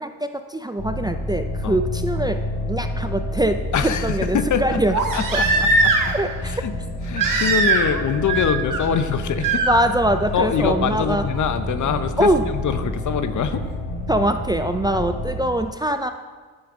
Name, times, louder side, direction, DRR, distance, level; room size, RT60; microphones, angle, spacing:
voice 1, 0.0-2.4 2.7-4.9 5.3-5.4 6.1-6.5 9.7-11.2 12.2-12.4 14.1-16.1, right 1 dB, 10° right, 7 dB, 0.4 m, -23 dB
sound 1, 0.8-15.5, left 1 dB, 75° left, 2.0 m, -29 dB
Crying sobbing, 2.2-2.3 4.9-6.2 7.2-8.0 8.3-8.8 9.4-9.7 11.4-11.5, right 3 dB, 60° right, 1.2 m, -20 dB
voice 2, 3.7-5.5 5.8-6.1 6.4-6.7 7.1-9.7 10.3-13.6, left 7 dB, 50° left, 10 dB, 0.7 m, -24 dB
9.3 x 6.5 x 3.6 m, 1.4 s
supercardioid pair, 50°, 37 cm